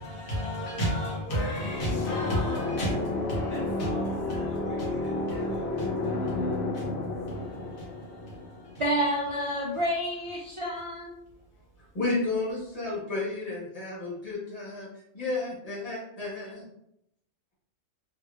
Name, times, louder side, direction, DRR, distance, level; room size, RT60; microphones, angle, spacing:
voice 1, 0.0-6.9 7.3-8.7, equal, 80° left, 1.6 m, -34 dB
sound 1, 1.6-9.2, left 2 dB, 60° left, 0.8 m, -31 dB
voice 2, 8.8-11.1, equal, 55° right, 0.3 m, -29 dB
voice 3, 11.9-14.9 15.1-16.6, left 3 dB, 30° left, 1.2 m, -32 dB
3.3 x 2.9 x 2.4 m
omnidirectional pair, 1.4 m